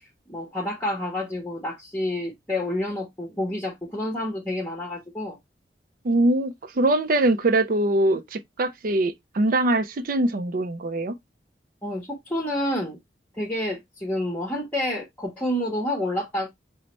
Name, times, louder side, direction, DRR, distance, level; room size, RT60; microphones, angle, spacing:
voice 1, 0.3-5.4 11.8-13.0 13.4-16.5, left 1 dB, 10° left, 0.9 m, -29 dB
voice 2, 6.0-11.1, right 2 dB, 50° right, 0.5 m, -22 dB
5.4 x 2.1 x 2.9 m
head